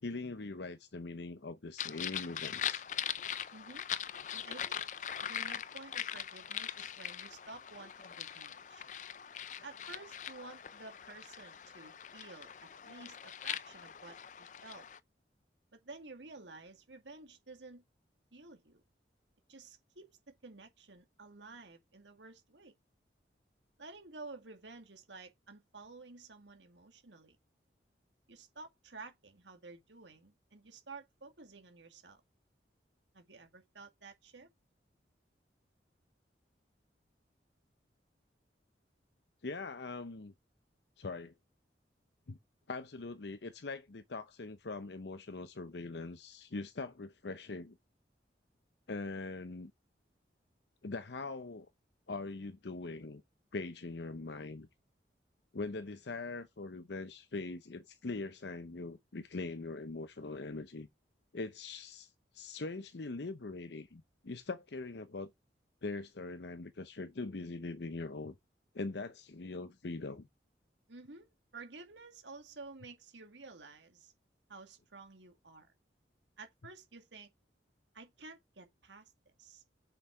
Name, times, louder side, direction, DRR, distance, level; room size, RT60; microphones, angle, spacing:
voice 1, 0.0-2.9 39.4-40.3 41.0-41.3 42.3-42.4 42.7-47.8 48.9-49.7 50.8-51.7 52.1-53.2 53.5-54.7 55.5-60.9 61.3-65.3 65.8-68.3 68.7-70.3, left 3 dB, 75° left, 0.7 m, -42 dB
sound 1, 1.8-15.0, left 9 dB, 45° left, 0.4 m, -41 dB
voice 2, 3.5-3.9 4.3-4.9 5.2-8.8 9.6-14.9 15.7-17.8 18.3-18.8 19.5-22.7 23.8-27.4 28.3-32.2 33.1-34.5 70.9-74.1 74.5-75.7 76.4-77.3 77.9-79.1 79.4-79.6, right 3 dB, 90° right, 2.1 m, -52 dB
7.0 x 5.8 x 4.7 m
head